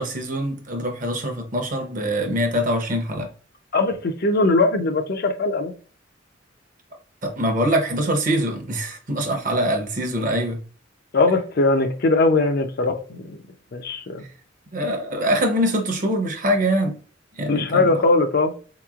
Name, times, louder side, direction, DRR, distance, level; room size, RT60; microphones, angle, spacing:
voice 1, 0.0-3.3 7.2-10.6 14.7-17.0 17.4-17.9, equal, 45° right, 0.7 m, -23 dB
voice 2, 3.7-5.7 11.1-13.4 13.7-14.2 17.5-18.5, left 3 dB, 50° left, 0.5 m, -20 dB
4.2 x 3.0 x 2.3 m
head